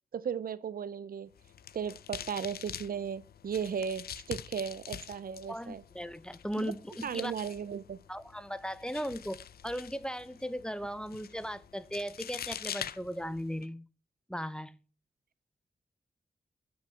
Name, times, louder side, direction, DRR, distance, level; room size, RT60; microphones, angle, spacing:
voice 1, 0.1-1.3 1.7-5.8 6.6-6.7 7.0-8.0, right 7 dB, 65° right, 0.6 m, -36 dB
sound 1, 1.3-13.7, left 9 dB, 75° left, 0.5 m, -45 dB
voice 2, 5.5-7.3 8.1-13.9 14.3-14.8, equal, 5° left, 0.6 m, -37 dB
7.6 x 6.3 x 7.4 m
cardioid pair, 70°, 16 cm